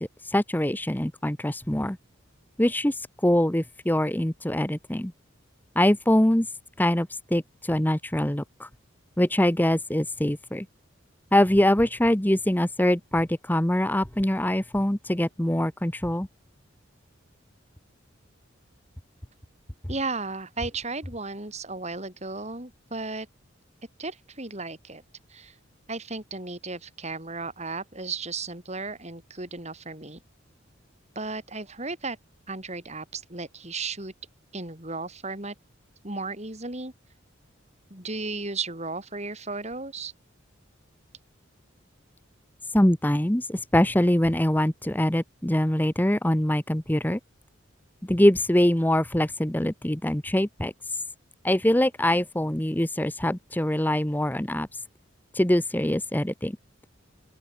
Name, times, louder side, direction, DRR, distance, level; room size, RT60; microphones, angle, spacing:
voice 1, 0.0-2.0 2.6-5.1 5.8-6.5 6.8-8.7 9.2-10.7 11.3-16.3 42.7-47.2 48.1-51.0 51.4-54.8 55.3-56.5, left 1 dB, 10° left, 0.9 m, -23 dB
voice 2, 19.9-23.3 24.0-25.0 25.3-25.6 25.9-30.2 31.2-32.2 32.5-34.1 34.5-35.6 36.0-36.9 37.9-40.1, right 3 dB, 35° right, 5.5 m, -34 dB
open air
head